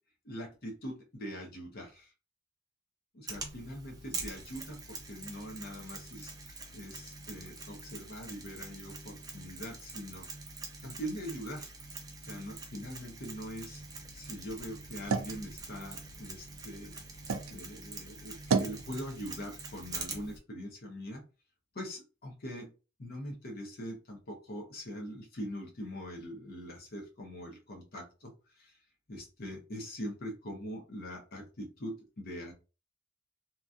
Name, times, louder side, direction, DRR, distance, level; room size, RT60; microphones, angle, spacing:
voice 1, 0.2-2.1 3.2-10.3 10.8-11.7 12.3-13.8 14.1-17.0 17.5-21.2 21.7-22.7 23.0-28.3 28.6-28.7 29.1-32.5, equal, 50° left, 1 dB, 0.8 m, -42 dB
Mechanisms, 3.3-20.4, right 3 dB, 20° right, 0.6 m, -45 dB
sound 1, 13.7-17.5 18.0-18.8, right 5 dB, 80° right, 0.4 m, -36 dB
2.9 x 2.6 x 2.4 m, 0.33 s
head